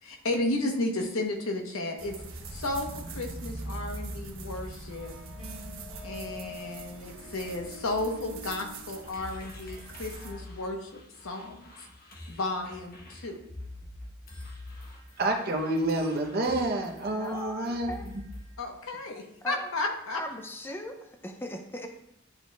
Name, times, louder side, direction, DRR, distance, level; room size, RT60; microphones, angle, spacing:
voice 1, 0.0-5.2 6.0-11.9 12.3-13.4 18.6-20.2, left 2 dB, 85° left, 1.1 m, -33 dB
sound 1, 2.0-10.3, right 2 dB, 75° right, 0.9 m, -42 dB
sound 2, 4.9-10.1, left 3 dB, 25° left, 2.2 m, -48 dB
sound 3, 9.1-18.5, left 1 dB, 45° left, 1.1 m, -46 dB
voice 2, 15.2-18.2, right 2 dB, 45° right, 0.9 m, -29 dB
voice 3, 17.2-18.0 19.4-19.7 20.1-20.9 21.2-21.9, equal, 10° left, 0.4 m, -38 dB
11.0 x 4.1 x 2.4 m
head